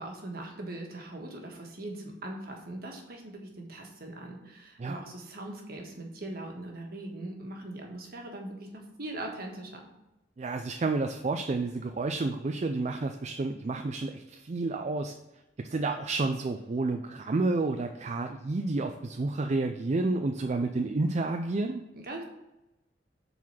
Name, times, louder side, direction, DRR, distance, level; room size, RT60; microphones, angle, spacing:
voice 1, 0.0-9.9 21.9-22.2, right 1 dB, 60° right, 1 dB, 1.5 m, -41 dB
voice 2, 10.4-15.1 15.6-21.8, right 3 dB, 40° right, 5 dB, 0.4 m, -30 dB
7.5 x 4.0 x 5.7 m, 0.93 s
head